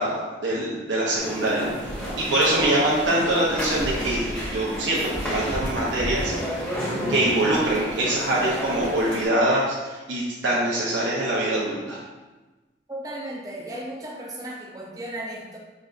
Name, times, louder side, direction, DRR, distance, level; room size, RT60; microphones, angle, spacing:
voice 1, 0.0-1.7 2.2-6.3 7.1-12.0, right 1 dB, 75° right, -6 dB, 0.8 m, -24 dB
sound 1, 1.2-9.2, equal, 10° left, 1.1 m, -30 dB
voice 2, 12.9-15.6, right 1 dB, 20° right, -3 dB, 0.6 m, -35 dB
5.2 x 3.3 x 2.5 m, 1.2 s
head